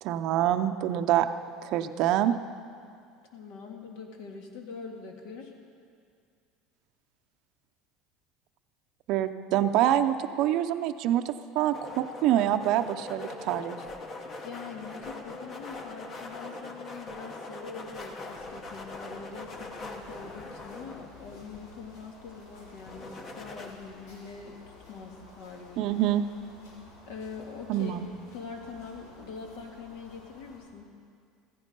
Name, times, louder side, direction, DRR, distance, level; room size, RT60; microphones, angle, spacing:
voice 1, 0.0-1.3 1.6-2.3 9.1-13.8 25.8-26.2 27.7-28.1, right 12 dB, 50° right, 9 dB, 0.6 m, -26 dB
voice 2, 3.3-5.5 14.2-24.6 24.9-25.8 27.1-28.0 28.3-30.9, left 5 dB, 65° left, 2 dB, 2.0 m, -43 dB
sound 1, 11.7-21.6 22.9-23.7, left 2 dB, 25° left, 1.1 m, -42 dB
sound 2, 18.3-30.6, left 2 dB, 90° left, 4.9 m, -53 dB
15.0 x 15.0 x 5.4 m, 2.3 s
cardioid pair, 165°, 0 cm